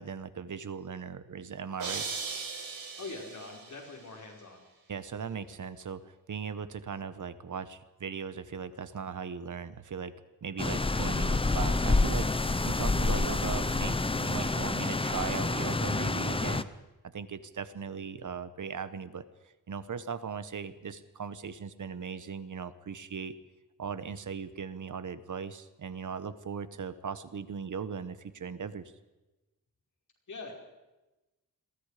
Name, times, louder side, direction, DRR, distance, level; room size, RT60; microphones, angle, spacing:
voice 1, 0.0-2.0 4.9-12.3 12.6-16.7 17.1-19.2 19.7-23.3 23.8-28.9, right 6 dB, 60° right, 13 dB, 1.2 m, -38 dB
sound 1, 1.8-3.9, right 5 dB, 90° right, 4.9 m, -38 dB
voice 2, 3.0-4.6 30.3-30.5, left 3 dB, 55° left, 1 dB, 5.3 m, -43 dB
sound 2, 10.6-16.6, left 3 dB, 15° left, 0.7 m, -28 dB
28.0 x 22.0 x 5.1 m, 1.1 s
wide cardioid pair, 175°, 35 cm